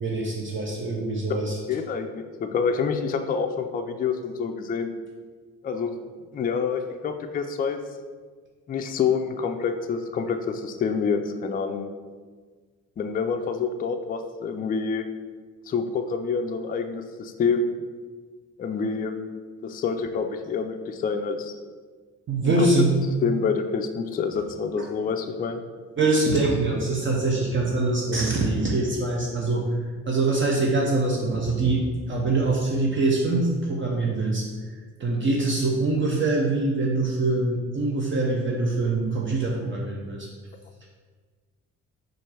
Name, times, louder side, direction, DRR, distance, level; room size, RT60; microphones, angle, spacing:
voice 1, 0.0-1.6 22.3-22.9 24.8-24.9 26.0-40.3, right 2 dB, 40° right, -1 dB, 0.7 m, -24 dB
voice 2, 1.7-5.0 5.6-6.0 6.3-7.8 8.7-11.9 13.0-15.1 15.7-17.8 18.6-19.2 19.6-21.5 22.4-22.7 23.2-25.6, left 5 dB, 30° left, 6 dB, 0.3 m, -27 dB
4.3 x 2.5 x 4.6 m, 1.5 s
cardioid pair, 90°, 30 cm